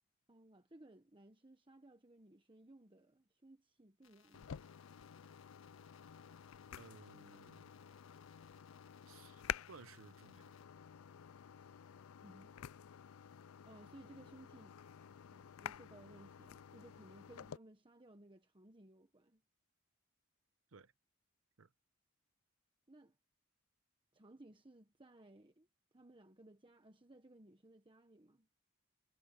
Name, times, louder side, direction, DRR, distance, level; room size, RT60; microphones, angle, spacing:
voice 1, 0.3-4.5 12.2-12.6 13.7-14.7 15.3-19.4 22.9-23.2 24.1-25.7 25.9-28.5, right 1 dB, 25° right, 1.2 m, -60 dB
sound 1, 4.0-10.6, left 8 dB, 70° left, 1.8 m, -70 dB
sound 2, 4.3-17.6, left 8 dB, 90° left, 0.4 m, -51 dB
voice 2, 6.8-7.7 9.1-9.4 9.7-10.6 20.7-20.9 21.6-21.7, right 4 dB, 70° right, 0.9 m, -58 dB
head